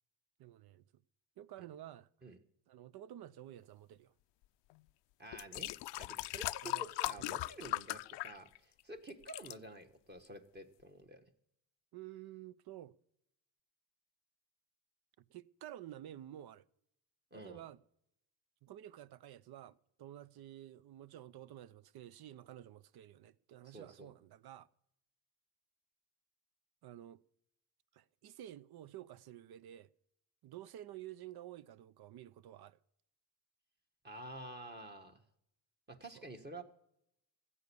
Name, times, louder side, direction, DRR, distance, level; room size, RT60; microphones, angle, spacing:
voice 1, 0.4-0.8 1.4-2.1 2.7-4.1 6.6-6.9 7.2-7.4 11.9-13.0 15.2-16.6 17.3-17.8 18.6-24.7 26.8-27.2 27.9-29.9 30.4-32.8 36.1-36.2, right 12 dB, 60° right, 0.7 m, -51 dB
sound 1, 4.7-4.8 5.3-8.8 9.1-9.5 10.2-10.3, left 19 dB, 70° left, 0.5 m, -39 dB
voice 2, 5.2-5.7 6.0-11.2 17.3-17.6 23.6-24.1 34.0-35.2 35.9-36.6, right 1 dB, 25° right, 1.5 m, -50 dB
15.5 x 8.4 x 7.0 m
cardioid pair, 115°, 44 cm